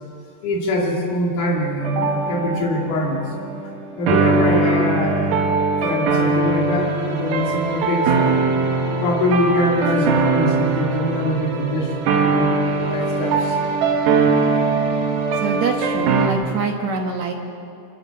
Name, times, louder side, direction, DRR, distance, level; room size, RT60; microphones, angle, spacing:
voice 1, 0.4-3.3 4.0-8.3 9.0-13.6, left 1 dB, 60° left, -3 dB, 4.0 m, -23 dB
sound 1, 1.8-16.3, right 4 dB, 80° right, 3.4 m, -21 dB
voice 2, 15.4-17.3, right 5 dB, 60° right, 2 dB, 2.1 m, -24 dB
26.0 x 13.0 x 8.5 m, 2.6 s
omnidirectional pair, 4.3 m